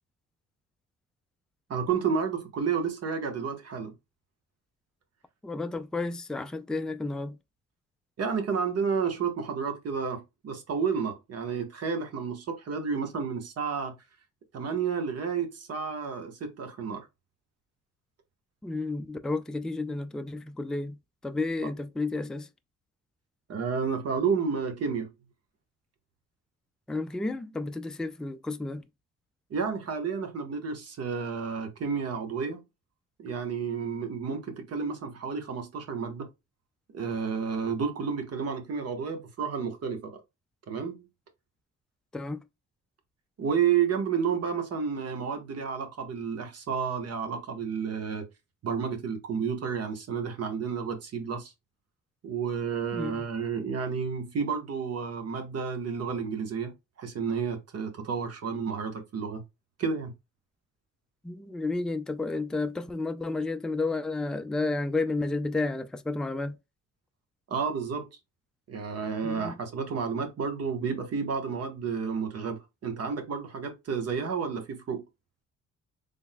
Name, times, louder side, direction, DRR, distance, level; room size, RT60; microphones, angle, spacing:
voice 1, 1.7-3.9 8.2-13.9 14.5-17.1 23.5-25.1 29.5-32.6 33.2-36.3 36.9-40.2 40.7-41.1 43.4-48.3 48.6-51.5 52.2-59.4 59.8-60.1 67.5-68.1 68.7-75.0, right 6 dB, 55° right, 1.2 m, -31 dB
voice 2, 5.4-7.4 18.6-21.0 21.2-22.5 26.9-28.8 42.1-42.4 52.9-53.2 61.2-66.6 69.2-69.6, left 3 dB, ahead, 0.3 m, -31 dB
3.8 x 3.5 x 2.2 m
cardioid pair, 90°, 30 cm